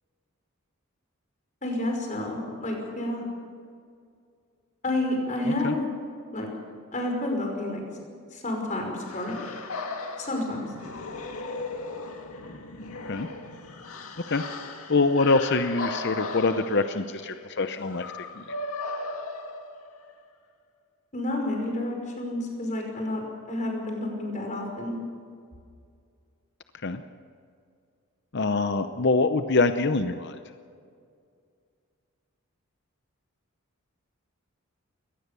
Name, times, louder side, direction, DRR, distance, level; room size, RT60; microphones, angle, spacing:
voice 1, 1.6-3.2 4.8-5.9 6.3-6.5 6.9-7.8 8.3-9.4 10.2-10.7 21.1-24.9, left 1 dB, 35° left, 1 dB, 5.4 m, -30 dB
sound 1, 9.1-20.1, left 3 dB, 90° left, 2.2 m, -37 dB
voice 2, 14.3-18.1 18.3-18.5 26.8-27.0 28.3-30.4, left 3 dB, 50° left, 9 dB, 0.7 m, -25 dB
22.5 x 19.0 x 6.9 m, 2.3 s
head